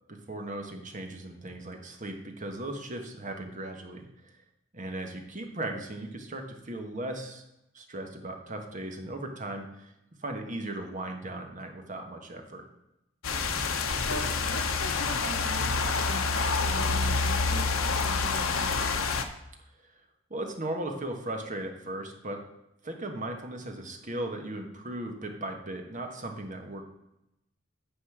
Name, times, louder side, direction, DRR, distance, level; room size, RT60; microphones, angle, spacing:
voice 1, 0.1-4.3 4.7-7.4 7.7-9.9 10.2-12.6 20.3-22.4 22.8-26.8, right 1 dB, 40° right, 3 dB, 1.4 m, -37 dB
sound 1, 13.2-19.2, left 4 dB, 80° left, 0.9 m, -28 dB
voice 2, 13.6-19.0, equal, 55° left, -2 dB, 2.8 m, -39 dB
9.9 x 4.3 x 7.2 m, 0.86 s
head